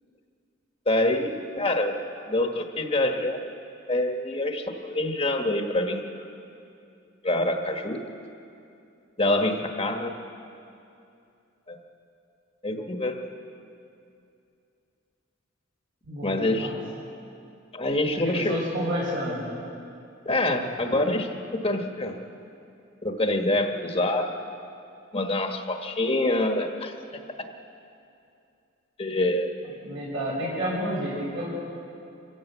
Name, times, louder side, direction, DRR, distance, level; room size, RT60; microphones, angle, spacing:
voice 1, 0.9-3.5 3.9-6.2 7.2-8.0 9.2-10.1 11.7-11.8 12.6-13.2 16.2-16.7 17.7-18.6 20.2-22.2 23.0-24.3 25.1-26.9 29.0-29.5, left 1 dB, 30° left, 4 dB, 1.4 m, -26 dB
voice 2, 16.0-16.8 18.1-19.4 29.8-31.5, equal, 70° right, -8 dB, 7.0 m, -30 dB
26.5 x 16.0 x 8.3 m, 2.6 s
head